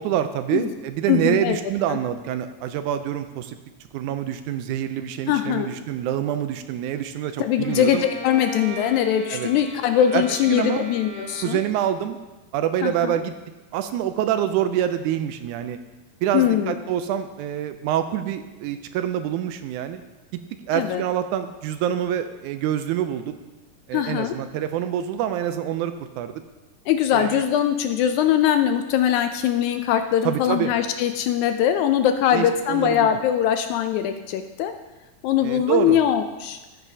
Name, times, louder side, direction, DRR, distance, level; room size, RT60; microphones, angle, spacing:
voice 1, 0.0-3.6 3.9-8.0 9.3-9.5 10.1-10.9 11.4-12.2 12.5-13.3 13.7-15.8 16.2-20.0 20.7-23.3 23.9-26.3 27.1-27.4 30.3-30.8 32.3-33.1 35.4-36.0, right 10 dB, 80° right, 9 dB, 1.8 m, -26 dB
voice 2, 1.1-1.6 1.9-2.0 5.3-5.8 7.4-11.6 12.8-13.2 16.3-16.7 20.7-21.0 23.9-24.4 26.9-34.7 35.2-36.6, left 10 dB, 80° left, 7 dB, 1.7 m, -21 dB
Bowed string instrument, 7.6-12.0, left 1 dB, 55° left, 2.9 m, -37 dB
13.5 x 8.9 x 2.7 m, 1.1 s
omnidirectional pair, 3.8 m